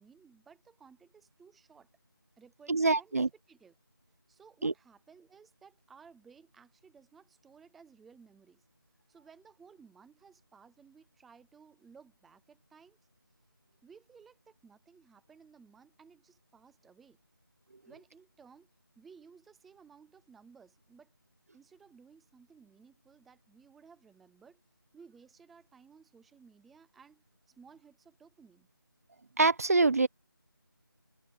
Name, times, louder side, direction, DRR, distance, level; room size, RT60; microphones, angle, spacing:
voice 1, 0.0-1.9 2.4-3.8 4.3-8.6 9.1-13.0 13.8-17.2 17.8-18.7 19.0-21.1 21.5-24.6 24.9-28.7, right 6 dB, ahead, 0.4 m, -58 dB
voice 2, 2.7-3.3 4.6-4.7 29.4-30.1, right 3 dB, 40° right, 1.5 m, -25 dB
figure-of-eight pair, 165°, 12 cm